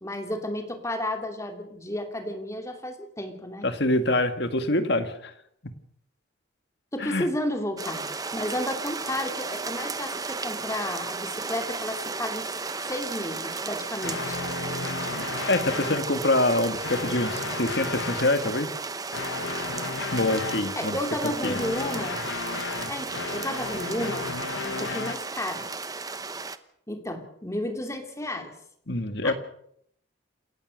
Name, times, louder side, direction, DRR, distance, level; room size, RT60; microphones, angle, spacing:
voice 1, 0.0-3.7 6.9-12.5 12.9-14.4 20.8-22.2 22.9-24.3 24.6-25.7 26.9-28.5 29.2-29.3, left 1 dB, 15° left, 5 dB, 2.8 m, -32 dB
voice 2, 3.6-5.3 7.0-7.3 15.5-18.7 20.1-21.0 21.4-21.6 28.9-29.3, left 2 dB, 55° left, 8 dB, 2.0 m, -25 dB
sound 1, 7.8-26.6, right 4 dB, 20° right, 0.9 m, -34 dB
sound 2, 14.0-16.0 16.7-18.3 19.1-20.7 21.4-25.1, left 4 dB, 75° left, 1.2 m, -33 dB
28.0 x 15.5 x 6.6 m, 0.71 s
head